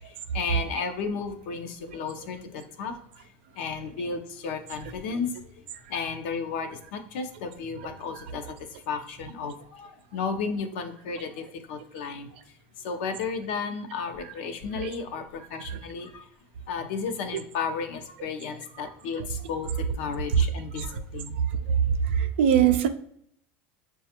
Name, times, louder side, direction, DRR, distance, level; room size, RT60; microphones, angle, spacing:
voice 1, 0.0-2.9 3.6-5.5 5.9-8.4 8.7-12.3 12.8-16.3 16.7-19.7 20.0-21.4 21.7-21.8, left 5 dB, 80° left, 6 dB, 0.6 m, -33 dB
voice 2, 22.0-22.9, right 9 dB, 90° right, 8 dB, 0.4 m, -22 dB
6.6 x 2.3 x 2.8 m, 0.68 s
supercardioid pair, 130°, 6 cm